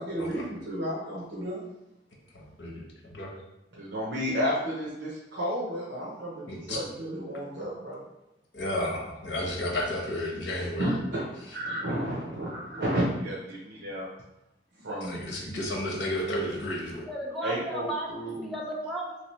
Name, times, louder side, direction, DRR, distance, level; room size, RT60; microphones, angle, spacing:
voice 1, 0.0-1.6 3.7-8.1 10.6-14.1 14.8-15.3 17.4-18.5, equal, 80° right, -6 dB, 0.8 m, -32 dB
voice 2, 2.3-3.3 6.5-6.8 8.5-11.0 15.0-17.1, left 1 dB, 80° left, -2 dB, 0.9 m, -32 dB
voice 3, 17.1-19.2, right 1 dB, ahead, -4 dB, 0.6 m, -34 dB
3.2 x 3.0 x 3.0 m, 0.93 s
head